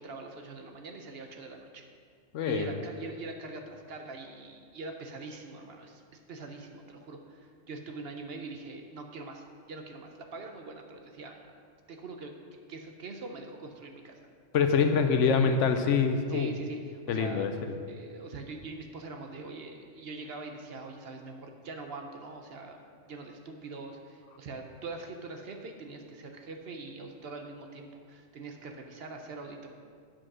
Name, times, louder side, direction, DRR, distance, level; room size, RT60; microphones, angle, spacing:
voice 1, 0.0-1.9 2.4-11.6 11.9-12.3 12.7-14.3 14.8-15.1 16.3-17.5 17.9-29.7, right 3 dB, 55° right, 4 dB, 0.9 m, -43 dB
voice 2, 2.3-2.7 14.5-16.5 17.1-17.5, left 6 dB, 75° left, 7 dB, 1.0 m, -25 dB
8.8 x 4.9 x 6.1 m, 2.1 s
omnidirectional pair, 1.3 m